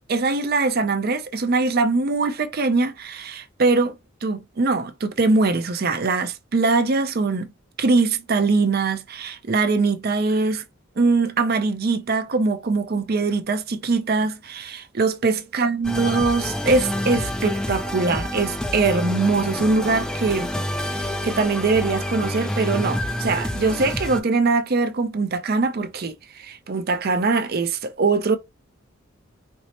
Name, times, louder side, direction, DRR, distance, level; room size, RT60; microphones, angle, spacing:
voice 1, 0.1-7.5 7.8-10.6 11.0-20.5 20.8-28.4, right 3 dB, 50° right, 0.5 m, -22 dB
sound 1, 15.8-24.2, left 1 dB, 5° left, 0.4 m, -28 dB
4.4 x 2.0 x 2.9 m
head